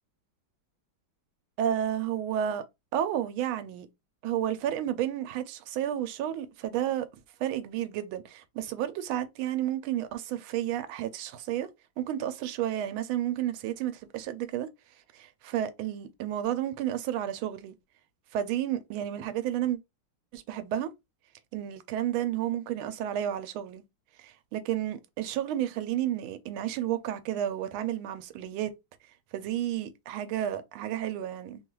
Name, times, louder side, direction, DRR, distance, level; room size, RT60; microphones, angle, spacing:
voice 1, 1.6-2.6 2.9-3.9 4.2-7.1 7.4-11.7 12.0-14.7 15.1-17.7 18.3-19.8 20.3-20.9 21.5-23.8 24.2-28.7 29.3-31.6, right 11 dB, 85° right, 1.4 m, -31 dB
3.4 x 2.3 x 3.0 m
omnidirectional pair, 2.2 m